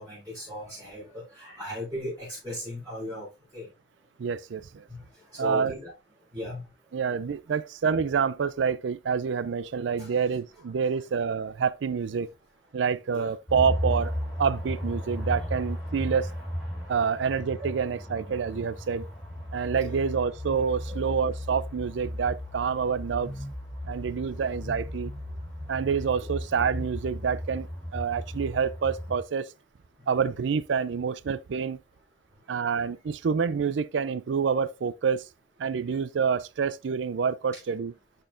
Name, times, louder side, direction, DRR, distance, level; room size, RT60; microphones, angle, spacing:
voice 1, 0.0-3.3 3.5-3.7 4.9-5.0 5.3-5.9 6.3-6.6 10.0-10.1 13.1-13.3 15.2-15.3 17.6-17.7 19.8-20.0 20.9-21.0 26.2-26.3, left 1 dB, 20° right, 4.6 m, -37 dB
voice 2, 4.2-4.8 5.4-5.7 6.9-12.3 12.7-16.3 16.9-19.1 19.5-23.3 23.8-25.1 25.7-27.7 27.9-29.5 30.1-31.8 32.5-35.2 35.6-37.9, right 6 dB, 80° right, 0.4 m, -27 dB
sound 1, 13.5-29.2, equal, ahead, 3.1 m, -35 dB
11.5 x 4.4 x 2.5 m
head